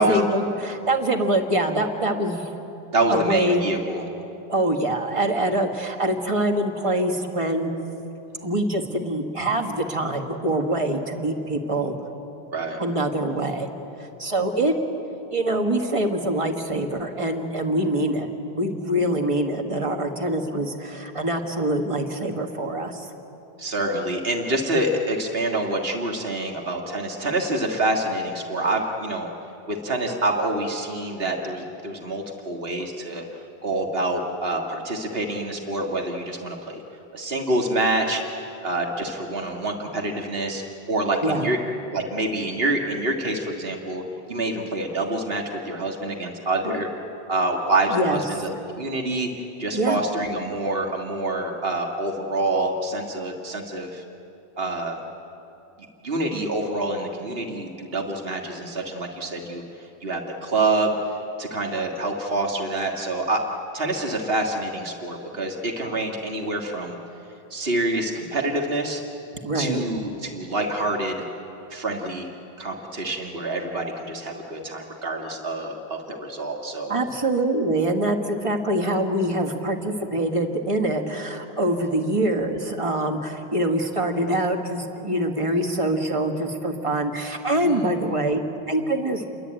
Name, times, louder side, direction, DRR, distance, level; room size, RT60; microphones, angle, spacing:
voice 1, 0.0-2.5 3.1-3.7 4.5-7.7 8.4-12.0 12.8-13.7 14.0-14.8 15.3-18.3 18.5-23.1 41.2-41.5 47.9-48.4 49.7-50.0 69.4-69.8 76.9-89.4, right 1 dB, 30° right, 3 dB, 1.9 m, -24 dB
voice 2, 2.9-4.0 8.4-8.5 12.5-12.8 23.6-29.3 29.7-33.2 33.6-36.8 37.1-38.2 38.6-40.6 40.9-41.6 41.9-44.0 44.3-46.9 47.3-48.5 48.8-49.3 49.6-54.0 54.6-55.0 56.0-60.9 61.4-63.4 63.7-67.0 67.5-69.0 69.5-71.2 71.7-72.3 72.6-76.9 87.6-87.9, right 2 dB, 70° right, 1 dB, 2.1 m, -26 dB
29.5 x 22.5 x 9.0 m, 2.9 s
omnidirectional pair, 1.0 m